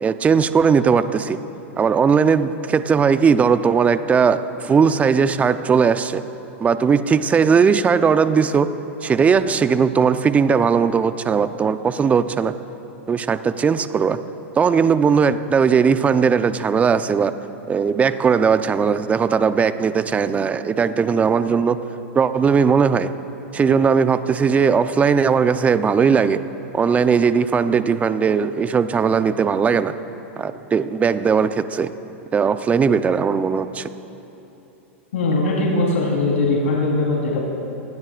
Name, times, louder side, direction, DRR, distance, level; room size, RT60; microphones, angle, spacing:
voice 1, 0.0-1.4 1.8-6.2 6.6-8.7 9.0-12.5 13.1-14.2 14.6-17.3 17.7-21.8 22.1-23.1 23.5-26.4 26.7-29.9 30.4-31.9 32.3-33.9, right 6 dB, 20° right, 11 dB, 0.7 m, -18 dB
voice 2, 35.1-37.4, left 2 dB, 75° left, -4 dB, 3.9 m, -20 dB
28.5 x 20.0 x 2.5 m, 3.0 s
hypercardioid pair, 105°, 7 cm